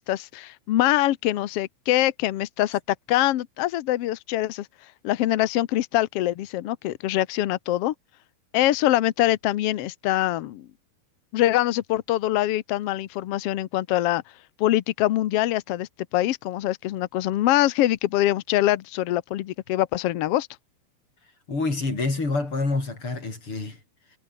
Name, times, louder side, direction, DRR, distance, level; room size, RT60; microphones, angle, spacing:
voice 1, 0.0-2.8 3.1-4.7 5.0-7.9 8.5-10.7 11.3-14.2 14.6-20.5, left 14 dB, 80° left, 1.3 m, -24 dB
voice 2, 21.5-23.8, left 3 dB, 35° left, 7.0 m, -27 dB
omnidirectional pair, 4.0 m